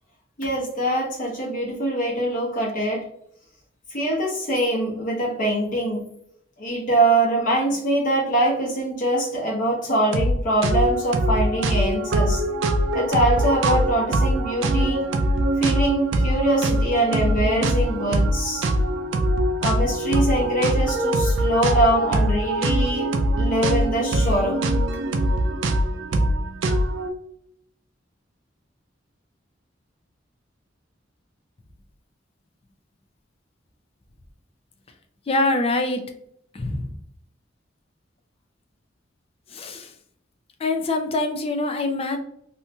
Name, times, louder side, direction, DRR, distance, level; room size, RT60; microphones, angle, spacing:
voice 1, 0.4-3.1 3.9-6.1 6.6-12.4 12.9-15.0 15.6-18.7 19.6-23.1 23.4-24.6, right 1 dB, 45° left, -2 dB, 1.0 m, -23 dB
sound 1, 10.1-10.3 10.6-27.1, right 1 dB, 85° right, 0.4 m, -22 dB
voice 2, 35.3-36.0 36.5-36.9 39.5-39.9 40.6-42.2, left 2 dB, 30° left, 6 dB, 0.4 m, -24 dB
2.8 x 2.7 x 2.2 m, 0.70 s
head